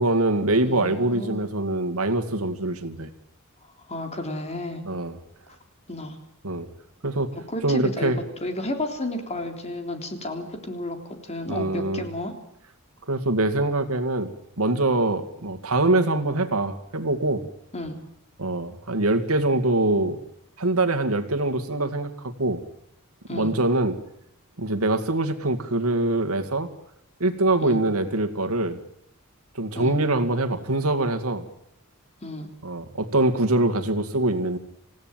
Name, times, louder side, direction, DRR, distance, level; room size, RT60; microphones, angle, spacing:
voice 1, 0.0-3.1 4.9-5.2 6.4-6.7 7.0-7.3 7.6-8.2 11.5-12.0 13.1-14.3 14.6-17.4 18.4-20.2 20.6-22.6 23.3-24.0 24.6-26.7 27.2-28.8 29.6-31.4 32.6-34.6, right 2 dB, 75° right, 7 dB, 2.2 m, -24 dB
voice 2, 0.6-1.5 3.9-4.8 5.9-6.2 7.3-8.1 8.4-11.0 11.2-12.3 17.7-18.0 23.3-23.6 27.6-27.9 29.8-30.0 32.2-32.5, left 1 dB, 30° left, 5 dB, 3.5 m, -32 dB
27.5 x 16.0 x 9.1 m, 0.76 s
head